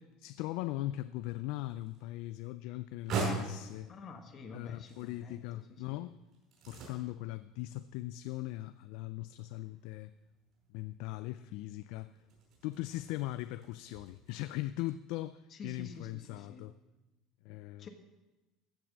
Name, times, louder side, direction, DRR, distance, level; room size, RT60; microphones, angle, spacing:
voice 1, 0.0-3.9 4.5-6.2 6.7-10.1 10.7-12.1 12.6-16.7 17.4-17.9, left 16 dB, 70° left, 0.4 m, -40 dB
sound 1, 1.3-14.5, right 3 dB, 45° right, 5.3 m, -44 dB
voice 2, 3.9-6.1 15.5-16.7 17.8-17.9, left 4 dB, 30° left, 1.4 m, -49 dB
15.0 x 6.2 x 7.2 m
cardioid pair, 160°, 0 cm